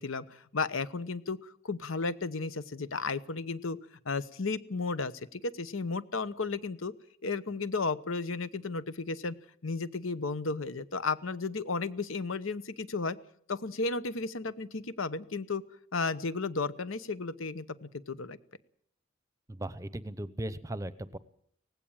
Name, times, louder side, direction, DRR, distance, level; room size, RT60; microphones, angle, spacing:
voice 1, 0.0-3.8 4.0-6.9 7.2-9.3 9.6-13.2 13.5-15.6 15.9-18.4, left 4 dB, 80° left, 15 dB, 1.0 m, -34 dB
voice 2, 19.5-21.2, right 1 dB, 15° right, 15 dB, 0.8 m, -37 dB
18.5 x 16.0 x 8.8 m, 0.65 s
head